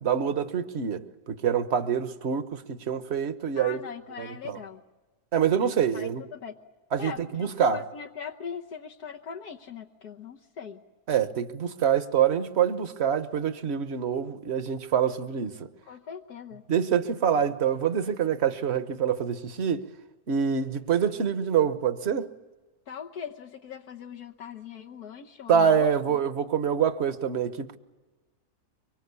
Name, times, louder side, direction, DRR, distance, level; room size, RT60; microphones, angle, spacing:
voice 1, 0.0-3.8 4.2-4.6 5.3-6.2 6.9-7.8 11.1-15.7 16.7-19.8 20.3-22.3 25.5-27.8, right 8 dB, 45° right, 1.3 m, -26 dB
voice 2, 3.6-4.8 5.9-6.6 7.0-10.8 15.9-16.6 22.9-26.2, left 7 dB, 75° left, 1.6 m, -40 dB
24.5 x 24.0 x 8.4 m
omnidirectional pair, 1.7 m